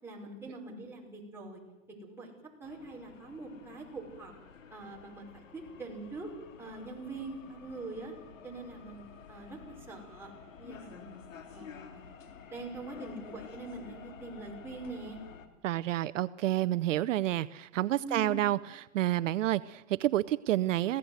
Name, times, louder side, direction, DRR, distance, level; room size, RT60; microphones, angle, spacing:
voice 1, 0.0-1.6 2.0-2.3 2.6-4.3 4.7-6.3 6.6-8.1 8.4-10.3 10.6-12.1 12.5-15.2 18.0-18.4, right 2 dB, 5° right, -3 dB, 5.1 m, -43 dB
sound 1, 2.6-15.5, left 6 dB, 85° left, 2.9 m, -51 dB
voice 2, 15.6-21.0, right 14 dB, 75° right, 16 dB, 0.7 m, -29 dB
23.0 x 16.5 x 7.9 m, 1.0 s
hypercardioid pair, 140°, 38 cm